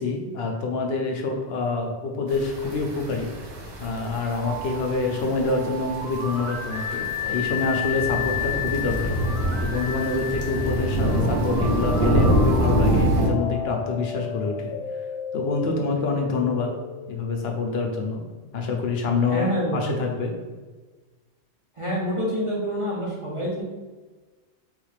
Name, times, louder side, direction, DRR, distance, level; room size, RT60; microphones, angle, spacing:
voice 1, 0.0-3.3 3.8-9.1 9.6-14.7 15.3-16.7 17.1-18.2 18.5-20.3, left 3 dB, 70° left, 2 dB, 0.8 m, -26 dB
sound 1, 2.3-13.3, equal, 65° right, 0.9 m, -26 dB
sound 2, 4.4-18.3, left 6 dB, 45° left, 0.4 m, -33 dB
voice 2, 19.3-20.0 21.8-23.6, equal, 35° right, -5 dB, 0.6 m, -27 dB
3.5 x 2.4 x 3.2 m, 1.3 s
omnidirectional pair, 1.1 m